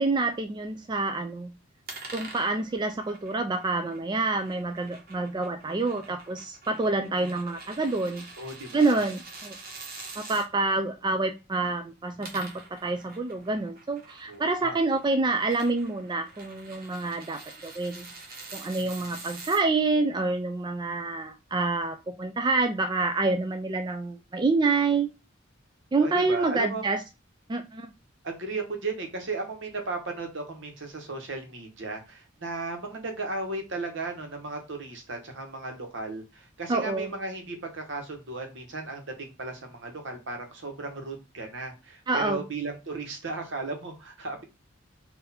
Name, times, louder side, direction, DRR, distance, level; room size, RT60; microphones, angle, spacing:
voice 1, 0.0-1.5 2.1-8.2 8.7-9.5 10.3-18.1 18.5-25.1 25.9-27.0 27.5-27.9 36.7-37.1 42.1-42.4, right 3 dB, 20° right, 6 dB, 0.4 m, -27 dB
sound 1, 1.9-10.5 12.0-19.6, right 3 dB, 50° right, 1.2 m, -46 dB
voice 2, 8.4-9.0 14.3-14.8 19.0-19.2 26.0-26.8 28.2-44.4, right 3 dB, 65° right, 4 dB, 1.2 m, -35 dB
4.1 x 2.6 x 4.1 m, 0.26 s
head